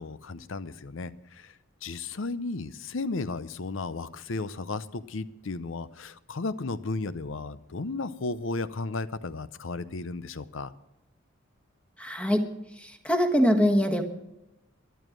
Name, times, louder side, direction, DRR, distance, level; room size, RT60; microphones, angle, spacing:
voice 1, 0.0-1.5 1.8-10.7, left 3 dB, 70° left, 15 dB, 0.7 m, -34 dB
voice 2, 12.0-12.4 12.8-14.0, equal, 5° left, 6 dB, 1.3 m, -23 dB
14.0 x 11.5 x 6.3 m, 0.92 s
head